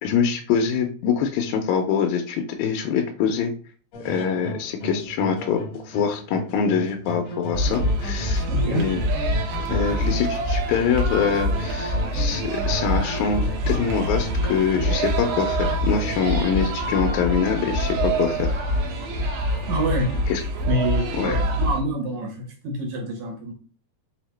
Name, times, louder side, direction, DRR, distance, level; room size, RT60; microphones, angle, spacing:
voice 1, 0.0-3.5 4.1-8.4 8.7-9.0 9.7-18.5 20.3-20.4 21.1-21.4, left 7 dB, 85° left, 3 dB, 1.9 m, -24 dB
sound 1, 3.9-20.2, equal, 70° left, 2.0 m, -37 dB
sound 2, 7.5-21.8, equal, 90° right, 2.2 m, -25 dB
voice 2, 8.5-8.8 19.7-20.1 20.6-23.5, right 1 dB, 75° right, 2 dB, 2.4 m, -26 dB
5.4 x 2.8 x 3.2 m, 0.41 s
omnidirectional pair, 3.3 m